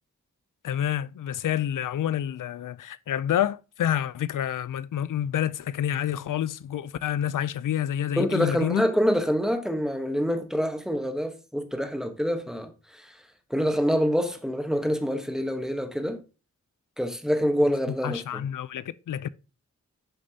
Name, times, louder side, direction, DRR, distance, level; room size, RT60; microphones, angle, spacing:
voice 1, 0.6-8.9 18.0-19.3, left 10 dB, 85° left, 0.5 m, -28 dB
voice 2, 8.2-13.2 13.5-16.2 17.0-18.5, equal, ahead, 1.0 m, -26 dB
10.5 x 6.8 x 2.8 m
wide cardioid pair, 145°, 31 cm